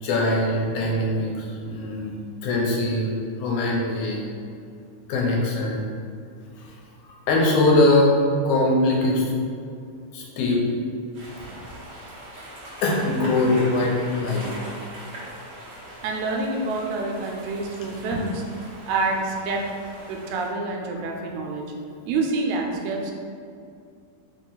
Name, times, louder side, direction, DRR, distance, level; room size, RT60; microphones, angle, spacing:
voice 1, 0.0-2.1 2.4-4.2 5.1-5.8 6.6-6.7 7.1-8.1 8.4-9.3 10.1-10.6 11.9-12.0 12.8-14.5, left 2 dB, 80° left, -2 dB, 2.1 m, -22 dB
sound 1, 11.1-20.5, right 1 dB, 55° right, 1.3 m, -41 dB
voice 2, 16.0-18.4 18.9-19.6 20.1-21.7 22.1-23.1, right 3 dB, 85° right, 0 dB, 1.9 m, -27 dB
4.6 x 2.9 x 3.8 m, 2.4 s
omnidirectional pair, 3.5 m